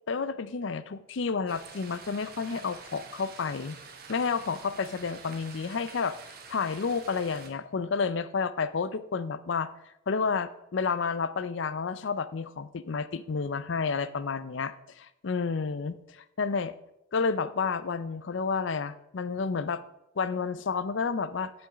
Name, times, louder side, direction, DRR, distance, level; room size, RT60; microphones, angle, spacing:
voice 1, 0.1-3.8 4.1-6.2 6.5-9.7 10.1-16.8 17.1-19.8 20.2-21.5, left 5 dB, 65° left, 14 dB, 0.5 m, -30 dB
sound 1, 1.5-7.5, right 5 dB, 50° right, 1.2 m, -48 dB
7.6 x 7.0 x 5.0 m, 0.85 s
head